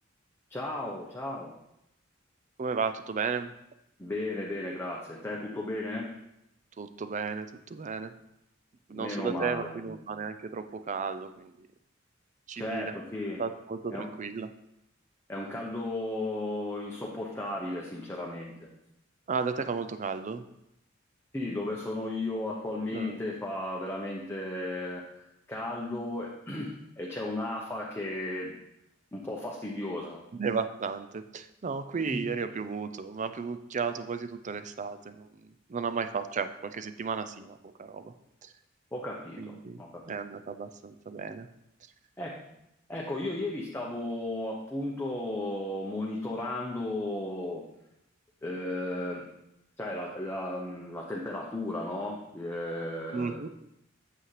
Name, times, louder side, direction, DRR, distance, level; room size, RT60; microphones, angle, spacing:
voice 1, 0.5-1.5 4.0-6.1 8.9-9.9 12.5-13.4 13.9-14.1 15.3-18.7 21.3-25.0 25.5-28.5 29.1-30.2 32.1-32.2 38.9-40.0 42.2-42.3 42.9-47.6 48.4-49.3 49.8-53.4, left 1 dB, 10° left, -3 dB, 0.8 m, -35 dB
voice 2, 2.6-3.5 6.8-8.1 8.9-11.7 12.5-12.9 13.4-14.5 19.3-20.4 22.9-23.2 30.3-38.1 38.4-38.5 39.4-39.8 40.1-41.5 53.1-53.5, right 5 dB, 40° right, 10 dB, 0.4 m, -34 dB
8.2 x 7.4 x 3.3 m, 0.83 s
head